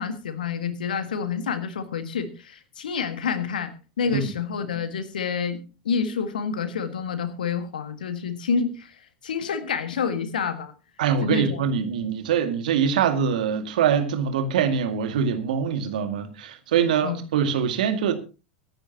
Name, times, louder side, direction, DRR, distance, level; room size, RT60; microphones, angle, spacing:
voice 1, 0.0-5.6 5.9-9.0 9.2-10.7 11.2-11.7 17.0-17.2, left 6 dB, 75° left, 1.8 m, -28 dB
voice 2, 11.0-18.1, right 7 dB, 65° right, 2.1 m, -24 dB
23.0 x 10.5 x 2.9 m
figure-of-eight pair, 85°, 5 cm